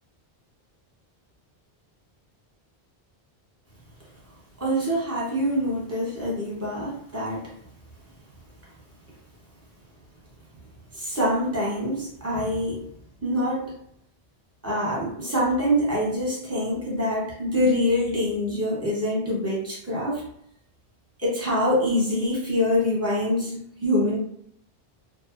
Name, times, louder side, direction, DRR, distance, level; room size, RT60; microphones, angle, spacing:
voice 1, 4.6-7.5 10.9-12.8 13.2-13.7 14.6-20.2 21.2-24.2, left 1 dB, 15° right, -5 dB, 0.8 m, -25 dB
2.7 x 2.1 x 2.4 m, 0.69 s
omnidirectional pair, 1.1 m